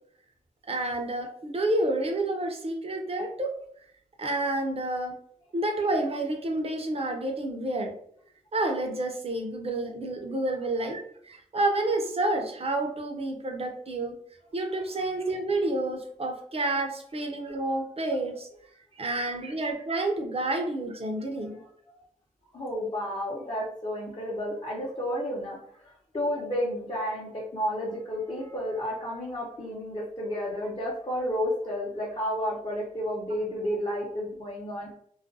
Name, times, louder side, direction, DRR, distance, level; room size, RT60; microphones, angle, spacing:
voice 1, 0.7-3.5 4.2-5.2 5.5-7.9 8.5-14.1 14.5-18.5 19.0-21.6, right 2 dB, 45° right, 3 dB, 0.5 m, -29 dB
voice 2, 21.4-21.7 22.5-34.9, equal, 35° left, -6 dB, 0.7 m, -32 dB
2.3 x 2.2 x 2.6 m, 0.66 s
wide cardioid pair, 75°, 14 cm